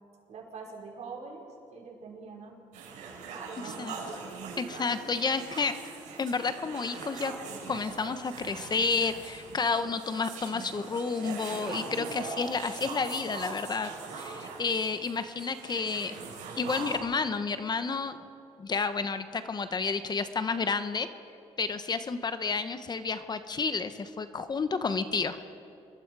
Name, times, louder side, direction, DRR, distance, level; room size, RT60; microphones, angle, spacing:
voice 1, 0.3-2.6 3.4-4.4 15.7-15.9, right 4 dB, 65° right, -1 dB, 5.0 m, -45 dB
sound 1, 2.7-17.0, right 4 dB, 90° right, 4.9 m, -41 dB
voice 2, 3.6-4.0 4.6-5.7 6.2-7.3 7.7-16.3 16.6-18.2 18.6-21.1 21.6-25.4, left 4 dB, 35° left, 10 dB, 1.0 m, -31 dB
27.5 x 22.5 x 4.8 m, 2.6 s
cardioid pair, 95°, 12 cm